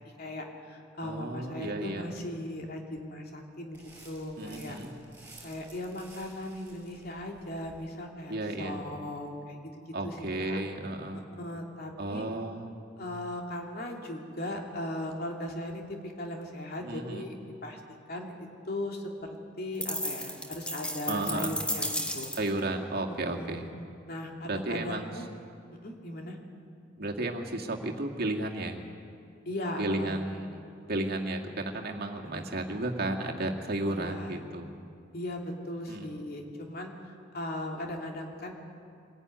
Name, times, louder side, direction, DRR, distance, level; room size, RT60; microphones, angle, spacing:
voice 1, 0.2-4.8 5.4-9.6 10.0-10.6 11.1-12.3 13.0-17.4 17.6-17.8 18.1-19.1 19.6-22.3 23.3-23.7 24.1-25.2 25.8-26.4 29.4-30.2 32.3-32.4 33.9-34.4 35.1-36.9 37.3-38.5, left 1 dB, 55° left, 1 dB, 2.8 m, -38 dB
voice 2, 1.0-2.1 4.4-4.9 8.3-8.8 9.9-11.2 12.0-12.7 16.8-17.3 21.1-21.5 22.4-23.7 24.4-25.1 26.9-28.8 29.8-34.7 35.9-36.1, right 2 dB, 55° right, 2 dB, 2.1 m, -33 dB
sound 1, 3.7-7.9, right 2 dB, 10° right, 5.4 m, -54 dB
sound 2, 19.8-22.6, left 1 dB, 5° left, 1.5 m, -34 dB
23.5 x 15.5 x 9.5 m, 2.5 s
head